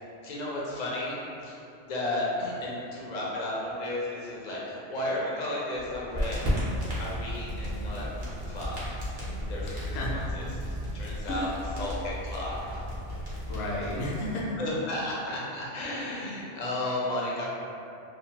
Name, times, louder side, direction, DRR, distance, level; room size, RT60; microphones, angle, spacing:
voice 1, 0.2-10.5 10.9-12.5 14.6-17.4, left 1 dB, 55° left, -6 dB, 0.4 m, -34 dB
sound 1, 5.8-13.9, equal, 35° right, 0.4 m, -37 dB
sound 2, 6.1-14.3, equal, 50° right, 0.8 m, -36 dB
voice 2, 9.6-10.1 11.3-11.5 13.5-14.6 15.8-16.1, left 1 dB, 80° left, -4 dB, 0.9 m, -33 dB
2.7 x 2.1 x 2.7 m, 2.7 s
omnidirectional pair, 1.3 m